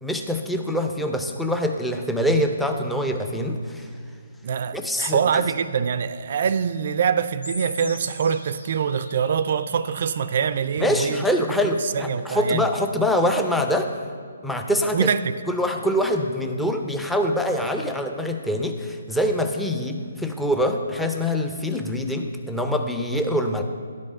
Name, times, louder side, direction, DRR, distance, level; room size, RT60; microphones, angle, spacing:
voice 1, 0.0-3.9 4.7-5.4 10.8-13.9 14.4-15.1 15.5-23.6, equal, 5° left, 0.6 m, -24 dB
voice 2, 4.4-11.2 11.8-12.7 14.9-15.4, right 7 dB, 50° right, 0.4 m, -24 dB
sound 1, 7.4-10.4, left 1 dB, 90° left, 1.4 m, -40 dB
11.0 x 5.2 x 6.6 m
figure-of-eight pair, 140°, 0 cm